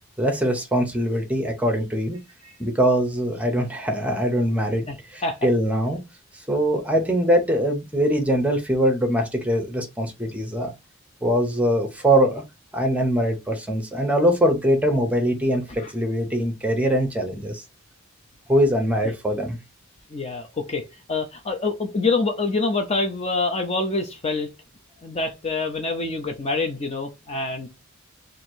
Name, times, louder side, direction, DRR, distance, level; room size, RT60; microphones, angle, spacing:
voice 1, 0.2-2.2 2.6-4.9 5.1-6.0 6.5-10.7 11.2-12.4 12.7-17.6 18.5-19.6, equal, 5° right, 0.8 m, -22 dB
voice 2, 4.9-5.4 15.8-15.9 19.0-19.1 20.1-24.5 25.0-27.7, left 3 dB, 30° left, 0.5 m, -26 dB
2.9 x 2.6 x 4.4 m
head